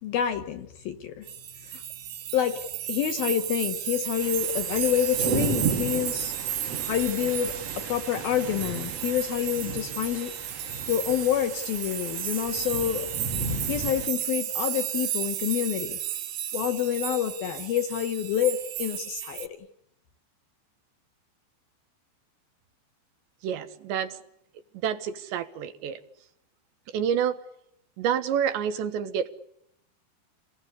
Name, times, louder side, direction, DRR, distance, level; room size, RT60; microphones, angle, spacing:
voice 1, 0.0-1.3 1.7-1.8 2.3-6.3 6.8-10.3 10.9-13.1 13.7-16.0 16.5-19.5, left 10 dB, 65° left, 9 dB, 2.6 m, -28 dB
sound 1, 1.3-19.5, right 11 dB, 90° right, 4.7 m, -33 dB
sound 2, 4.2-14.1, right 4 dB, 45° right, 2.5 m, -34 dB
voice 2, 23.4-24.2 24.8-26.0 26.9-27.4 28.0-29.3, right 8 dB, 70° right, 10 dB, 3.4 m, -28 dB
29.5 x 20.0 x 8.3 m, 0.78 s
omnidirectional pair, 5.5 m